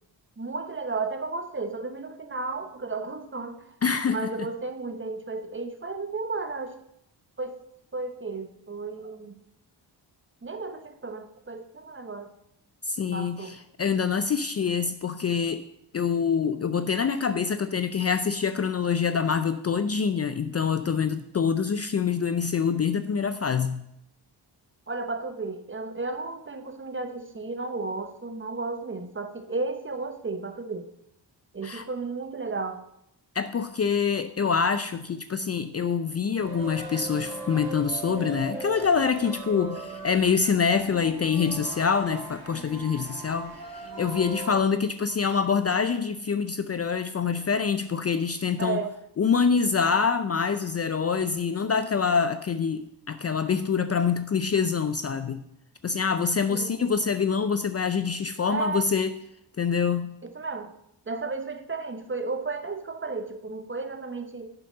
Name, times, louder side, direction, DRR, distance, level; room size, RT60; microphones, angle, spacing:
voice 1, 0.4-3.8 4.1-6.7 7.4-7.6 7.9-9.4 10.4-12.3 13.1-13.6 24.9-30.9 31.5-32.8 48.6-48.9 56.5-56.8 58.5-58.9 60.2-60.7 61.1-64.5, right 3 dB, 25° right, 7 dB, 1.0 m, -33 dB
voice 2, 3.8-4.3 12.8-15.6 15.9-23.8 31.6-31.9 33.3-48.8 49.2-55.4 55.8-59.1 59.6-60.1, left 6 dB, 35° left, 11 dB, 0.5 m, -25 dB
sound 1, 36.4-44.6, right 2 dB, 50° right, 2.9 m, -38 dB
11.0 x 6.8 x 3.9 m, 0.77 s
cardioid pair, 70°, 45 cm